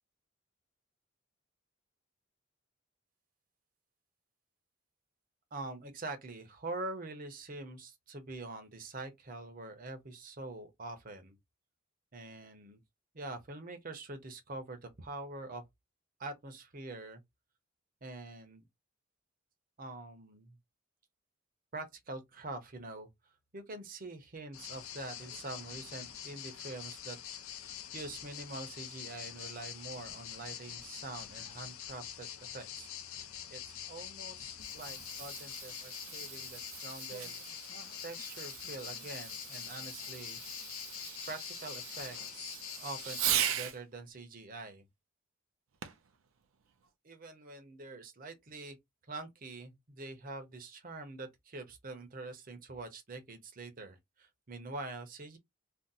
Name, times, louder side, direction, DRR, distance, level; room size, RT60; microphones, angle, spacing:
voice 1, 5.5-11.4 12.1-12.8 13.1-15.6 16.2-17.2 18.0-18.7 19.8-20.6 21.7-23.1 23.5-27.2 27.6-37.4 38.0-40.4 41.3-44.9 47.0-48.8 49.1-55.4, right 2 dB, 40° right, 0.7 m, -45 dB
sound 1, 24.5-43.2, left 10 dB, 85° left, 0.5 m, -45 dB
Fireworks, 34.5-43.8 45.8-46.1 46.8-46.9, right 10 dB, 80° right, 0.5 m, -39 dB
2.6 x 2.0 x 3.9 m
head